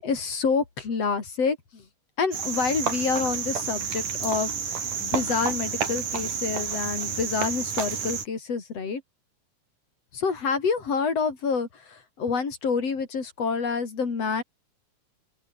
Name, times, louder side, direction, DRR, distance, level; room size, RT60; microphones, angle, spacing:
voice 1, 0.0-1.8 2.2-4.5 5.0-9.0 10.1-14.4, left 5 dB, 55° left, 5.0 m, -27 dB
Cricket, 2.3-8.3, right 6 dB, 90° right, 5.2 m, -30 dB
open air
omnidirectional pair, 3.5 m